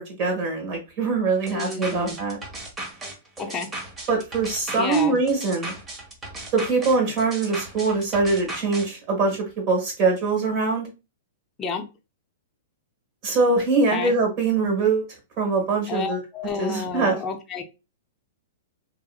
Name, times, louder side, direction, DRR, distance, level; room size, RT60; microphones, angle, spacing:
voice 1, 0.0-2.4 4.1-5.7 6.5-10.9 13.2-15.0 15.4-16.2 16.6-17.1, right 3 dB, 40° right, 1 dB, 1.6 m, -23 dB
voice 2, 1.5-2.2 3.4-3.7 4.7-5.2 11.6-11.9 13.9-14.1 15.9-17.6, left 5 dB, 20° left, 3 dB, 0.5 m, -30 dB
sound 1, 1.5-8.9, right 1 dB, 15° right, 0.9 m, -36 dB
2.8 x 2.6 x 2.3 m, 0.27 s
hypercardioid pair, 130°, 0 cm